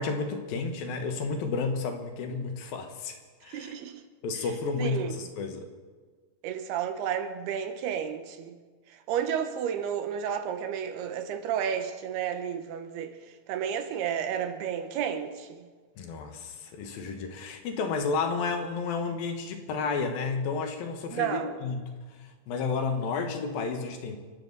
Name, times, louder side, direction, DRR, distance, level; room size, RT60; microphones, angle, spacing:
voice 1, 0.0-3.2 3.4-3.7 4.2-5.7 16.0-21.8 22.5-24.2, left 4 dB, 70° left, 3.0 m, -31 dB
voice 2, 3.5-4.0 4.8-5.2 6.4-8.5 8.9-13.1 13.5-15.6 21.1-21.6, right 8 dB, 85° right, 3.1 m, -32 dB
29.0 x 12.0 x 4.0 m
omnidirectional pair, 4.5 m